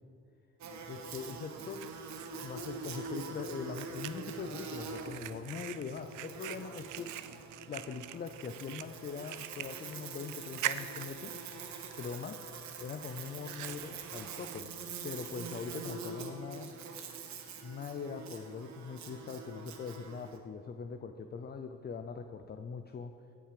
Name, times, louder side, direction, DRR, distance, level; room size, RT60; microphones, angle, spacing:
Buzz, 0.6-20.4, right 4 dB, 65° right, 1.1 m, -45 dB
voice 1, 0.9-1.9 2.4-7.1 7.7-11.3 11.9-12.4 12.8-14.7 15.0-16.7 17.6-23.1, left 5 dB, 35° left, 7 dB, 0.5 m, -42 dB
Fire, 1.1-16.0, right 14 dB, 85° right, 0.5 m, -45 dB
16.5 x 5.8 x 5.0 m, 2.3 s
cardioid pair, 90°, 30 cm